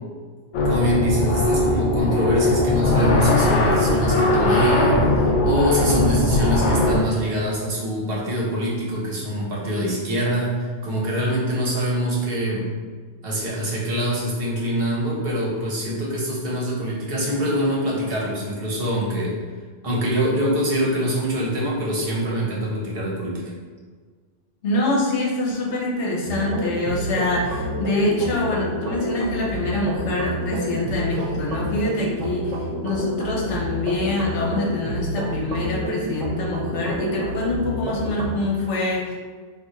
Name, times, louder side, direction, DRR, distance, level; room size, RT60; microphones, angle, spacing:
sound 1, 0.5-7.0, left 2 dB, 55° left, 0.6 m, -19 dB
voice 1, 0.6-12.7 13.2-19.4 19.8-23.4, equal, 55° right, -4 dB, 0.9 m, -24 dB
voice 2, 24.6-39.1, left 2 dB, 75° left, -4 dB, 1.1 m, -25 dB
sound 2, 26.3-38.4, right 1 dB, 85° right, 0.9 m, -29 dB
2.5 x 2.4 x 4.1 m, 1.5 s
omnidirectional pair, 1.2 m